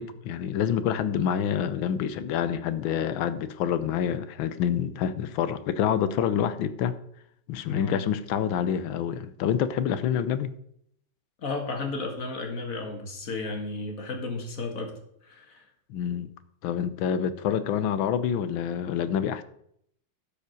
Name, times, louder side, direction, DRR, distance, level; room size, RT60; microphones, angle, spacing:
voice 1, 0.0-7.0 7.5-10.5 15.9-16.3 16.6-19.4, left 8 dB, 75° left, 14 dB, 1.5 m, -27 dB
voice 2, 7.7-8.0 11.4-14.9 15.2-15.6, left 3 dB, 45° left, 3 dB, 2.0 m, -33 dB
12.0 x 4.9 x 6.4 m, 0.70 s
omnidirectional pair, 2.3 m